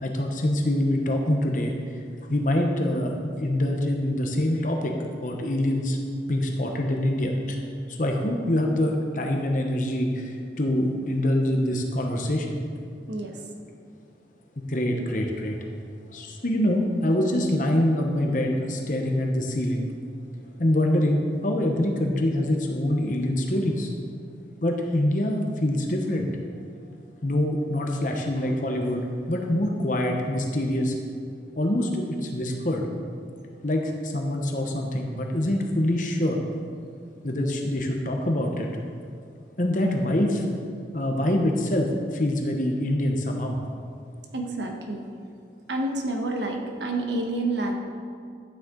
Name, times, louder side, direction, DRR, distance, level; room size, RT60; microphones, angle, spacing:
voice 1, 0.0-1.7 2.3-6.0 6.3-7.6 7.9-12.6 14.7-15.6 16.1-19.8 20.6-23.9 24.6-26.3 27.2-30.9 31.6-32.9 33.6-36.4 37.2-38.7 39.6-40.5 40.9-43.6, left 1 dB, 45° left, 2 dB, 1.0 m, -25 dB
voice 2, 13.1-13.4 26.9-27.0 44.3-45.0 45.7-47.7, right 2 dB, 90° right, 2 dB, 1.3 m, -29 dB
12.5 x 9.0 x 3.9 m, 2.3 s
head